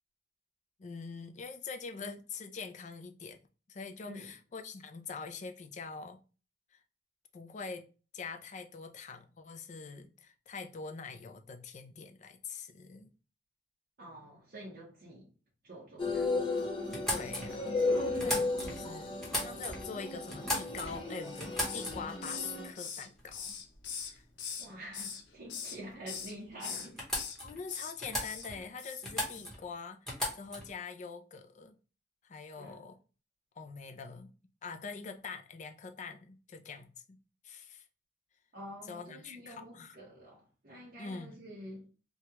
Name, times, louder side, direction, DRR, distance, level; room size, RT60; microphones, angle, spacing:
voice 1, 0.8-3.4 3.7-6.2 6.7-6.8 7.3-7.9 8.1-13.1 17.1-23.6 24.0-24.2 27.4-30.1 30.4-31.8 32.2-33.0 33.6-34.3 34.6-37.8 38.9-39.9 41.0-41.4, left 5 dB, 45° left, 0.4 m, -44 dB
voice 2, 14.0-15.3 15.6-16.4 24.6-27.1 32.6-32.8 38.5-41.9, right 1 dB, 55° right, 0.9 m, -48 dB
sound 1, 16.0-22.7, left 3 dB, 30° left, 1.0 m, -35 dB
sound 2, 16.9-18.9 19.2-19.9 20.3-21.1 21.4-22.2 23.2-23.4 23.7-24.2 26.1-26.2 26.5-26.6 27.0-27.6 28.0-28.7 29.0-29.6 30.1-30.7, left 1 dB, 5° left, 1.1 m, -37 dB
Hiss, 21.2-22.0 22.2-24.7 24.9-25.8 26.1-26.3 26.6-27.4 27.7-27.9 28.2-28.5 28.8-29.0 29.3-29.5, left 7 dB, 90° left, 0.6 m, -41 dB
3.1 x 2.3 x 2.9 m
head